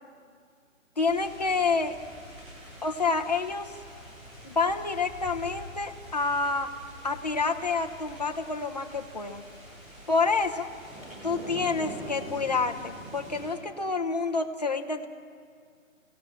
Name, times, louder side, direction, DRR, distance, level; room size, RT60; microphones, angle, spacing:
voice 1, 1.0-2.0 2.8-3.7 4.4-6.7 7.0-9.4 10.1-10.7 11.2-15.1, left 4 dB, 30° left, 4 dB, 0.9 m, -28 dB
sound 1, 1.0-13.5, equal, 5° right, 7.2 m, -45 dB
23.0 x 17.5 x 7.4 m, 2.2 s
hypercardioid pair, 180°, 40 cm